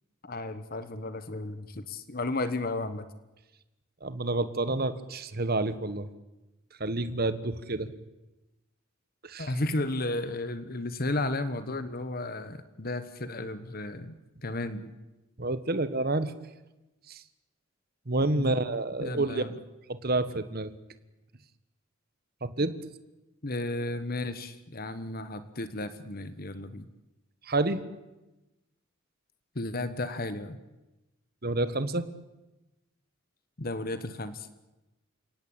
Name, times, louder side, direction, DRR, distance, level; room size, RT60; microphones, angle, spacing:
voice 1, 0.2-3.0 9.4-14.1 14.4-14.9 18.3-18.6 19.0-19.5 23.4-26.9 29.5-30.6 33.6-34.5, left 2 dB, 45° left, 12 dB, 1.3 m, -33 dB
voice 2, 4.0-6.1 6.8-7.9 9.2-9.5 15.4-16.3 17.1-17.2 18.1-19.6 19.9-20.7 22.4-22.8 27.5-27.8 31.4-32.1, right 2 dB, 45° right, 13 dB, 1.4 m, -29 dB
29.0 x 17.5 x 8.8 m, 1.0 s
head